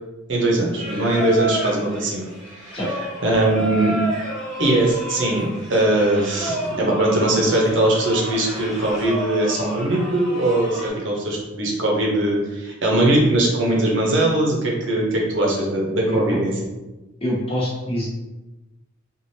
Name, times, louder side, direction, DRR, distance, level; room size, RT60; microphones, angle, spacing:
voice 1, 0.3-2.3 2.6-2.7 3.2-4.0 4.6-16.5, right 1 dB, 70° right, -2 dB, 0.8 m, -20 dB
Singing, 0.7-10.9, equal, ahead, 1.0 m, -31 dB
voice 2, 16.0-16.4 17.2-18.1, equal, 30° left, -7 dB, 1.0 m, -25 dB
3.1 x 2.5 x 2.7 m, 1.1 s
head